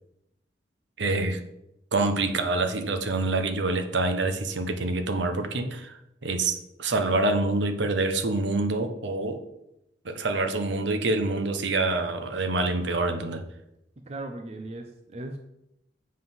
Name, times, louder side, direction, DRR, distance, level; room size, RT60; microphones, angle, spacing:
voice 1, 1.0-1.4 1.9-9.4 10.0-13.4, right 2 dB, 70° right, 7 dB, 0.8 m, -26 dB
voice 2, 14.1-15.4, right 2 dB, 35° right, 5 dB, 0.5 m, -37 dB
7.5 x 3.7 x 5.9 m, 0.85 s
head